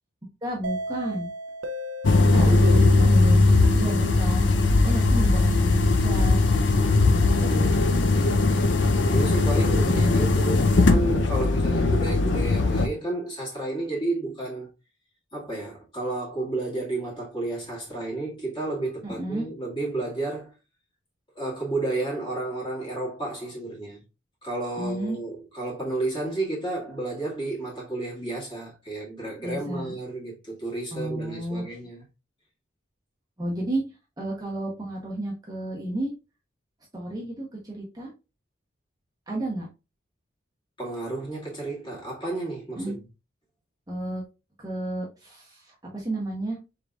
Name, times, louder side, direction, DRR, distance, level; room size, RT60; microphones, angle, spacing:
voice 1, 0.4-1.3 2.3-3.5 3.7-4.5 4.8-6.5 7.1-8.0 9.8-10.2 19.0-19.5 24.8-25.2 29.4-29.9 30.9-31.6 33.4-33.8 34.2-36.1 36.9-38.1 39.3-39.7 42.8-43.0 43.9-44.2 44.6-46.6, right 1 dB, 20° right, 0.9 m, -31 dB
sound 1, 0.6-5.3, right 1 dB, 75° right, 0.6 m, -35 dB
sound 2, 2.0-12.9, left 3 dB, 65° left, 0.5 m, -20 dB
voice 2, 2.3-2.9 6.8-8.7 9.1-14.7 15.3-20.6 21.4-24.0 24.4-32.0 40.8-43.0, right 2 dB, 25° left, 2.1 m, -32 dB
4.7 x 3.8 x 2.4 m
head